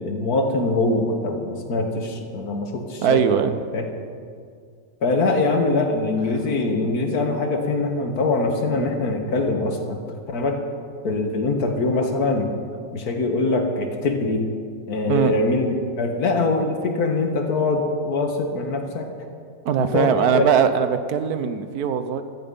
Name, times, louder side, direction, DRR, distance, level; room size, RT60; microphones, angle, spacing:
voice 1, 0.0-3.2 3.7-3.8 5.0-10.0 10.3-10.6 11.0-12.5 12.9-14.5 14.9-19.1 19.8-20.4, left 3 dB, 80° left, 4 dB, 2.0 m, -23 dB
voice 2, 3.0-3.6 15.1-15.3 19.6-22.2, right 8 dB, 85° right, 10 dB, 1.4 m, -20 dB
15.5 x 13.0 x 5.5 m, 2.2 s
omnidirectional pair, 1.6 m